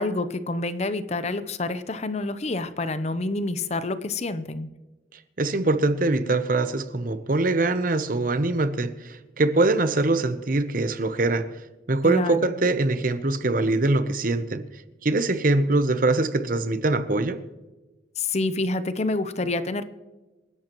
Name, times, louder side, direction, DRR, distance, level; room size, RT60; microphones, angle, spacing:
voice 1, 0.0-4.7 12.0-12.5 18.2-19.8, left 2 dB, 35° left, 0.7 m, -28 dB
voice 2, 5.4-11.5 11.9-14.7 15.0-17.4, right 2 dB, 45° right, 0.8 m, -23 dB
27.5 x 11.5 x 3.0 m
head